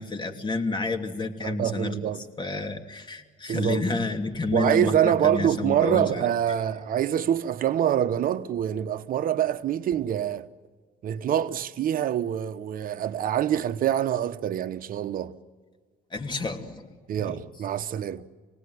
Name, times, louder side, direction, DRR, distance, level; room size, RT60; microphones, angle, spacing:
voice 1, 0.0-2.1 2.4-6.3 16.1-16.9 17.2-17.4, left 3 dB, 25° left, 2.8 m, -30 dB
voice 2, 1.4-2.2 3.5-3.9 4.5-10.5 11.0-15.3 17.1-18.2, right 10 dB, 55° right, 1.0 m, -25 dB
28.5 x 19.0 x 9.5 m
cardioid pair, 110°, 17 cm